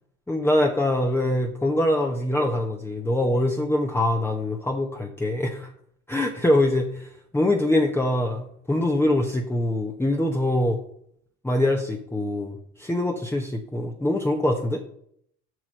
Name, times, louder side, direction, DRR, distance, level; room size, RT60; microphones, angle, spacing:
voice 1, 0.3-5.7 6.1-10.8 11.4-14.8, left 1 dB, 5° left, 2 dB, 1.1 m, -24 dB
7.8 x 6.0 x 6.7 m, 0.67 s
supercardioid pair, 85°, 33 cm